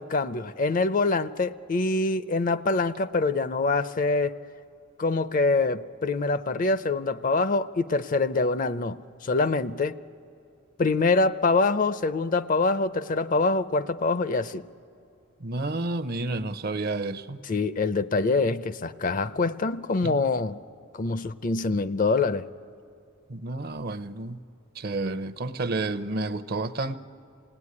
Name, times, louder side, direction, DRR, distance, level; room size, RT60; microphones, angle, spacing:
voice 1, 0.0-4.4 5.0-9.9 10.8-14.6 17.4-20.6 20.9-22.4, left 3 dB, 40° left, 0.5 m, -25 dB
voice 2, 15.4-17.4 20.0-20.1 23.3-24.4 24.8-27.0, right 2 dB, 50° right, 0.7 m, -30 dB
27.5 x 18.0 x 9.7 m
head